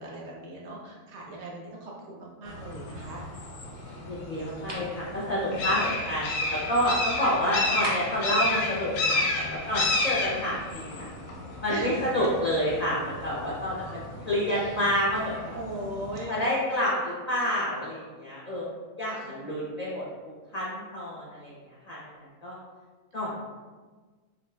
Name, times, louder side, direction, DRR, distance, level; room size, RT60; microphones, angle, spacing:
voice 1, 0.0-3.2 11.7-11.9 13.8-13.9 14.5-14.9 15.5-16.4 19.1-19.4, right 1 dB, 60° right, -3 dB, 0.8 m, -39 dB
sound 1, 2.5-16.2, left 2 dB, 70° left, 0.9 m, -32 dB
voice 2, 4.1-11.1 11.6-15.6 16.3-18.7 19.0-21.5 21.9-22.0 22.4-22.6 23.1-23.4, equal, 45° left, -7 dB, 0.5 m, -29 dB
sound 2, 4.7-4.9 7.8-8.3, right 1 dB, 25° right, 0.5 m, -34 dB
5.0 x 2.4 x 2.2 m, 1.4 s
omnidirectional pair, 1.6 m